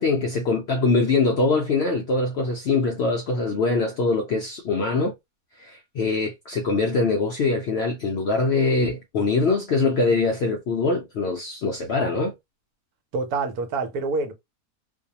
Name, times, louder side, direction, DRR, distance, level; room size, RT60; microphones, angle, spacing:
voice 1, 0.0-5.1 5.6-12.3, left 3 dB, 75° left, 0.6 m, -23 dB
voice 2, 13.1-14.3, right 3 dB, 80° right, 1.1 m, -26 dB
2.6 x 2.2 x 2.6 m
omnidirectional pair, 1.6 m